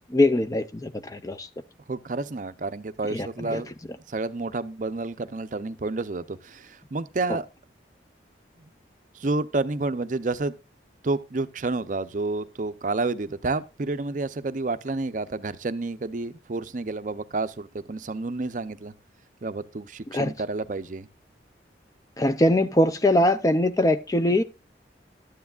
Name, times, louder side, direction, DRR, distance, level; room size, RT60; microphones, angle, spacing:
voice 1, 0.1-1.5 3.1-3.6 7.3-7.4 20.1-20.3 22.2-24.4, left 1 dB, 20° left, 0.4 m, -22 dB
voice 2, 1.9-3.7 4.1-7.5 9.1-10.5 11.0-18.9 19.4-21.1, right 3 dB, 45° right, 0.5 m, -30 dB
12.5 x 9.5 x 2.4 m
head